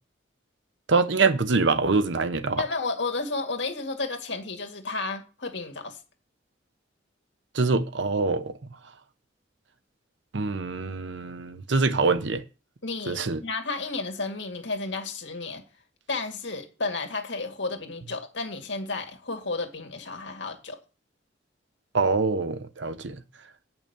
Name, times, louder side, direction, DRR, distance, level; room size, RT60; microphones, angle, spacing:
voice 1, 0.9-2.6 7.5-8.5 10.3-12.4 13.1-13.4 21.9-23.2, right 4 dB, 75° right, 0.9 m, -24 dB
voice 2, 2.6-6.0 12.8-15.6 16.1-20.8, left 3 dB, 70° left, 2.1 m, -32 dB
8.9 x 5.9 x 6.7 m
head